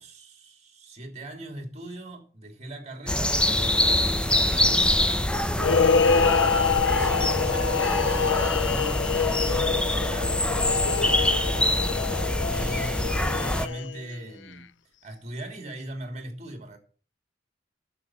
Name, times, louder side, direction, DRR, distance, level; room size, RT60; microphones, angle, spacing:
voice 1, 0.0-3.4 3.9-5.3 6.1-10.3 10.9-14.7 15.0-16.8, right 1 dB, 40° right, 3.0 m, -40 dB
sound 1, 3.1-13.7, left 1 dB, 5° left, 0.7 m, -25 dB
Guitar, 3.4-8.2, right 1 dB, 55° left, 3.9 m, -45 dB
sound 2, 5.6-14.1, left 6 dB, 90° left, 0.6 m, -26 dB
9.9 x 7.0 x 7.5 m
head